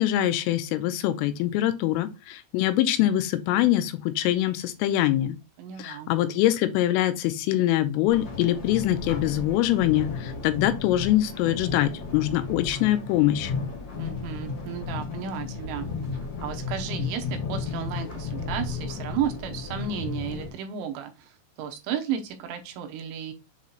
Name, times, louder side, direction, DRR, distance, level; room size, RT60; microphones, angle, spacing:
voice 1, 0.0-5.4 5.8-13.5, left 13 dB, 85° left, 3.3 m, -24 dB
voice 2, 5.6-6.1 14.0-15.9 16.4-23.3, right 8 dB, 80° right, 3.1 m, -33 dB
sound 1, 8.1-20.5, left 4 dB, 50° left, 1.8 m, -34 dB
7.6 x 3.1 x 4.1 m
omnidirectional pair, 5.9 m